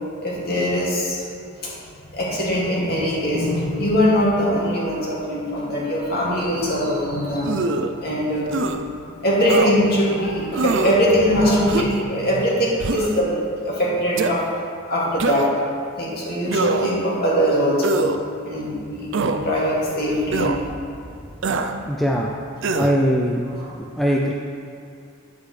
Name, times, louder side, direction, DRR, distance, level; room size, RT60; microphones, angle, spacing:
voice 1, 0.2-1.2 1.6-1.7 2.1-8.5 8.9-13.3 13.6-14.4 14.9-15.5 16.0-18.0 18.4-20.5 23.4-23.7, equal, 45° left, -6 dB, 2.2 m, -22 dB
sound 1, 7.4-7.9 8.5-8.8 9.5-9.7 10.5-11.0 11.7-12.0 12.8-13.2 14.2-14.3 15.2-15.6 16.5-17.0 17.8-18.2 19.1-19.4 20.3-20.6 21.4-21.7 22.6-23.0, right 3 dB, 55° right, 0.4 m, -23 dB
voice 2, 21.9-22.3 22.7-23.5 24.0-24.3, equal, ahead, -2 dB, 0.3 m, -20 dB
10.0 x 8.1 x 3.3 m, 2.4 s
head